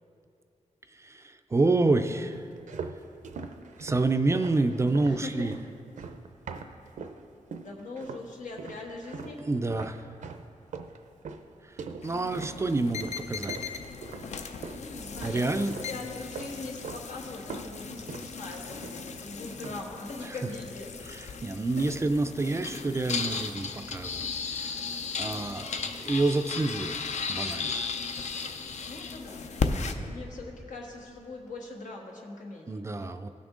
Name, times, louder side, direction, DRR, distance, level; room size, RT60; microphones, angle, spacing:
voice 1, 0.9-2.5 3.8-5.5 9.5-10.1 11.6-13.6 15.2-15.7 20.2-20.3 21.1-27.9 29.6-29.7 32.7-33.3, right 2 dB, 20° right, 8 dB, 0.3 m, -28 dB
sound 1, 2.3-7.2 7.5-8.3 8.6-14.9 15.2-16.0 16.3-17.1 17.3-19.2 19.5-19.9, right 5 dB, 80° right, 0.6 m, -42 dB
voice 2, 5.0-5.5 7.6-9.4 14.8-20.9 28.8-29.5 30.0-32.8, left 3 dB, 90° left, 0 dB, 1.4 m, -41 dB
sound 2, 12.0-29.9, left 5 dB, 65° left, 0.5 m, -36 dB
17.0 x 6.1 x 3.7 m, 2.6 s
wide cardioid pair, 155°, 13 cm